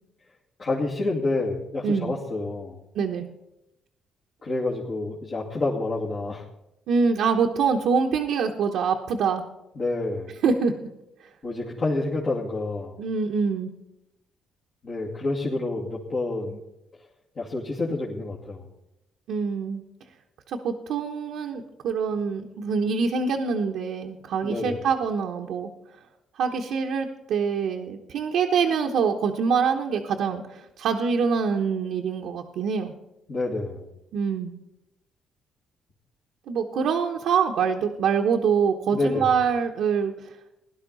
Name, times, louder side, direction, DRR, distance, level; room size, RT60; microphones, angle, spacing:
voice 1, 0.6-2.8 4.4-6.4 9.8-10.3 11.4-13.0 14.8-16.6 17.4-18.7 24.4-24.8 33.3-33.9 38.9-39.3, left 2 dB, 50° left, -5 dB, 2.5 m, -28 dB
voice 2, 1.8-2.2 2.9-3.3 6.9-9.4 10.4-10.7 13.0-13.7 19.3-19.8 20.5-25.7 26.4-32.9 34.1-34.5 36.5-40.1, right 6 dB, 80° right, 0 dB, 1.0 m, -25 dB
17.0 x 11.5 x 4.1 m, 0.88 s
cardioid pair, 90°, 0 cm